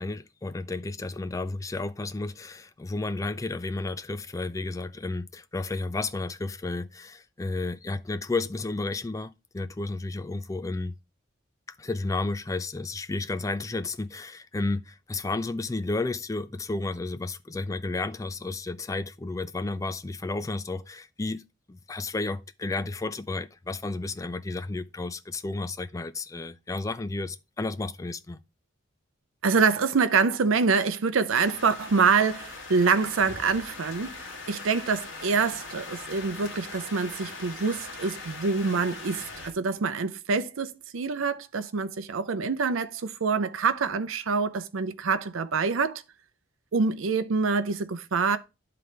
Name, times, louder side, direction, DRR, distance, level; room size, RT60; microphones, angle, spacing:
voice 1, 0.0-10.9 11.8-21.4 21.7-28.4, left 3 dB, 15° left, 0.3 m, -32 dB
voice 2, 29.4-34.2 34.5-46.0 46.7-48.4, right 5 dB, 80° right, 0.6 m, -26 dB
sound 1, 31.3-39.5, left 3 dB, 85° left, 1.9 m, -41 dB
11.0 x 3.8 x 3.2 m
head